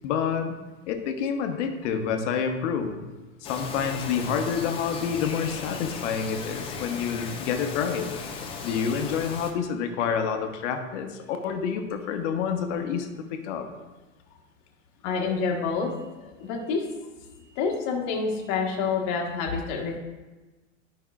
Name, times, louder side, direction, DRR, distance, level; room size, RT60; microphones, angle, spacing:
voice 1, 0.0-0.6 0.9-3.0 3.4-8.1 8.6-13.7, left 7 dB, 60° left, 5 dB, 1.0 m, -28 dB
Bird vocalization bird call bird song, 3.4-9.5, left 5 dB, 15° left, 0.5 m, -36 dB
voice 2, 15.0-15.9 16.2-16.9 17.4-20.0, left 5 dB, 40° left, 0 dB, 1.3 m, -28 dB
11.0 x 5.4 x 2.4 m, 1.2 s
hypercardioid pair, 135°, 41 cm